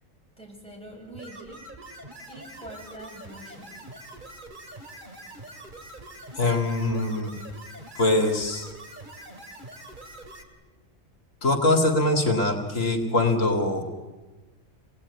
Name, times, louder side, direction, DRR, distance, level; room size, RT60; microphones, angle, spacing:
voice 1, 0.4-1.7 2.3-3.8, right 1 dB, 5° left, -3 dB, 7.7 m, -44 dB
sound 1, 1.1-10.4, right 1 dB, 35° right, 2.9 m, -44 dB
voice 2, 6.4-7.4 8.0-8.7 11.4-13.8, left 2 dB, 75° left, 4 dB, 2.5 m, -23 dB
27.5 x 19.5 x 9.6 m, 1.3 s
omnidirectional pair, 1.4 m